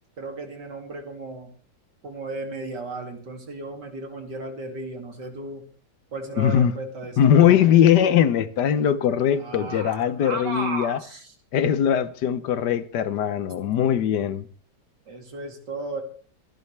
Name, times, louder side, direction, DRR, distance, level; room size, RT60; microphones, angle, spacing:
voice 1, 0.2-1.5 2.0-5.7 6.1-7.6 9.4-11.3 15.1-16.0, right 2 dB, 80° right, 3.2 m, -35 dB
voice 2, 6.4-6.7 7.2-11.0 11.5-14.5, left 9 dB, 75° left, 1.5 m, -20 dB
25.0 x 10.5 x 3.3 m
omnidirectional pair, 1.8 m